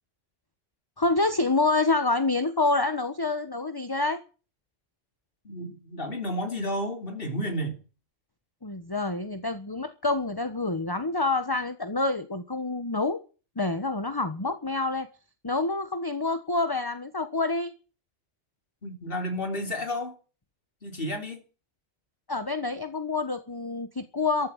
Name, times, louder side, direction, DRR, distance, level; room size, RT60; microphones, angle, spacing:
voice 1, 1.0-4.2 8.6-13.2 13.6-15.1 15.4-17.7 22.3-24.5, left 3 dB, 20° left, 9 dB, 1.2 m, -27 dB
voice 2, 5.5-7.8 18.8-20.1 20.8-21.4, equal, 45° left, 4 dB, 3.7 m, -31 dB
14.5 x 13.5 x 7.3 m, 0.35 s
omnidirectional pair, 1.3 m